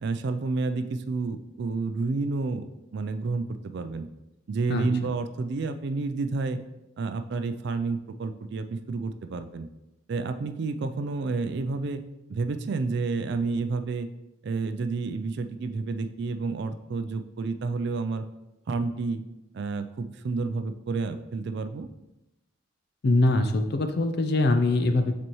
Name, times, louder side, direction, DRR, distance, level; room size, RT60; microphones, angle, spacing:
voice 1, 0.0-4.1 4.5-6.6 7.0-9.7 10.1-12.0 12.3-14.1 14.4-18.2 18.7-19.2 19.5-21.9, right 3 dB, 55° right, 9 dB, 0.4 m, -30 dB
voice 2, 23.0-25.2, left 2 dB, 50° left, 7 dB, 0.5 m, -23 dB
7.6 x 4.1 x 3.0 m, 0.93 s
head